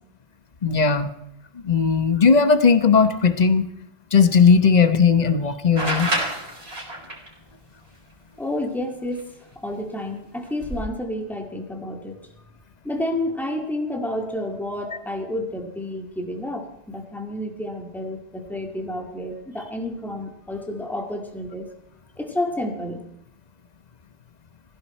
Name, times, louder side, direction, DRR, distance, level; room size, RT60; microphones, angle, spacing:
voice 1, 0.6-1.1 1.6-3.6 4.1-6.1, left 5 dB, 45° left, 11 dB, 1.2 m, -17 dB
sound 1, 5.8-7.3 9.2-9.3 10.5-10.8, right 1 dB, 85° right, 4.7 m, -27 dB
voice 2, 8.4-12.2 12.8-21.7 22.2-23.1, left 1 dB, ahead, 2 dB, 2.1 m, -30 dB
20.0 x 15.5 x 4.4 m, 0.76 s
omnidirectional pair, 1.0 m